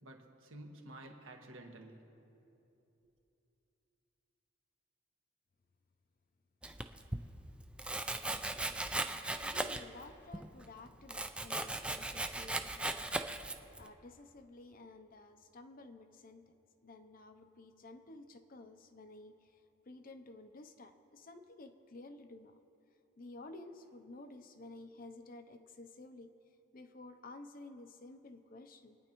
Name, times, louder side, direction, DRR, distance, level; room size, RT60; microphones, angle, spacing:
voice 1, 0.0-2.0 3.0-3.1, right 1 dB, 80° right, 3 dB, 1.4 m, -51 dB
Domestic sounds home sounds, 6.6-7.2 7.8-10.0 10.3-13.9, right 2 dB, 5° right, 0.3 m, -38 dB
voice 2, 9.4-13.5 13.8-16.6 16.8-22.6 23.2-26.4 26.7-29.0, left 2 dB, 45° left, 8 dB, 0.6 m, -53 dB
24.5 x 9.7 x 3.0 m, 2.9 s
head